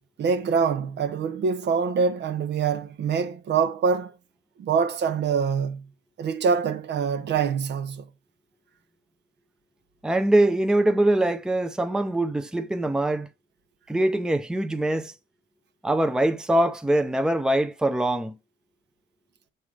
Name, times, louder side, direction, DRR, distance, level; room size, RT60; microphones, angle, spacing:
voice 1, 0.2-4.1 4.6-5.9 6.2-8.1, right 6 dB, 60° right, 0.8 m, -25 dB
voice 2, 10.0-13.3 13.9-15.1 15.8-18.3, right 1 dB, 5° right, 0.6 m, -23 dB
7.3 x 3.4 x 4.8 m
cardioid pair, 90°, 20 cm